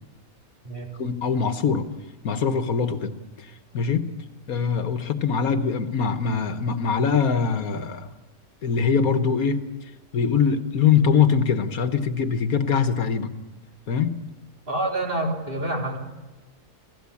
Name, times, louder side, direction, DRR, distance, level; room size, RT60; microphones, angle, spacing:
voice 1, 1.0-1.9 2.2-4.1 4.5-8.1 8.6-9.7 10.1-13.4 13.9-14.2, left 6 dB, 75° left, 9 dB, 1.7 m, -23 dB
voice 2, 14.7-16.0, right 1 dB, 35° right, 0 dB, 3.9 m, -27 dB
28.5 x 17.5 x 8.5 m, 1.2 s
omnidirectional pair, 1.5 m